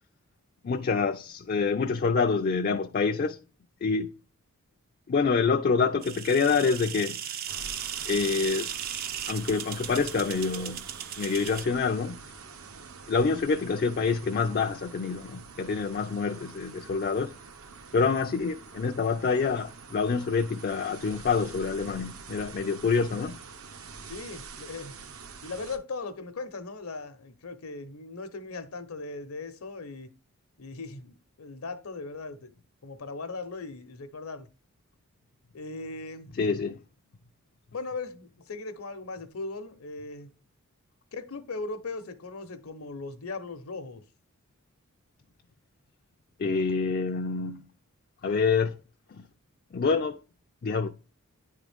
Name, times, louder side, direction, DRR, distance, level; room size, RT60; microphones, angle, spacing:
voice 1, 0.6-3.4 3.8-4.1 5.1-7.2 8.1-8.7 9.3-10.8 11.2-12.2 13.1-17.3 17.9-23.4 36.4-36.8 46.4-47.6 48.2-48.8 49.7-50.2 50.6-50.9, left 5 dB, 45° left, 0.4 m, -26 dB
sound 1, 6.0-11.7, right 9 dB, 40° right, 0.4 m, -37 dB
sound 2, 7.5-25.8, right 5 dB, 75° right, 0.8 m, -46 dB
voice 2, 24.1-24.9 25.4-30.1 30.6-32.5 32.8-34.5 35.5-36.3 37.7-40.3 41.1-44.0, left 3 dB, 80° left, 0.8 m, -38 dB
9.8 x 3.6 x 3.4 m
head